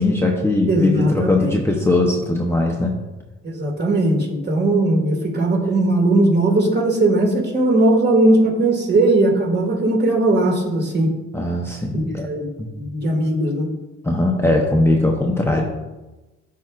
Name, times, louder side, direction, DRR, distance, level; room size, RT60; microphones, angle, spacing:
voice 1, 0.0-3.0 11.3-12.3 12.6-12.7 14.0-15.6, left 2 dB, 10° left, -1 dB, 0.8 m, -19 dB
voice 2, 0.7-1.6 3.4-11.1 11.9-12.5 12.8-13.7, right 2 dB, 35° right, 0 dB, 1.9 m, -18 dB
12.0 x 4.7 x 2.4 m, 1.1 s
cardioid pair, 90°, 30 cm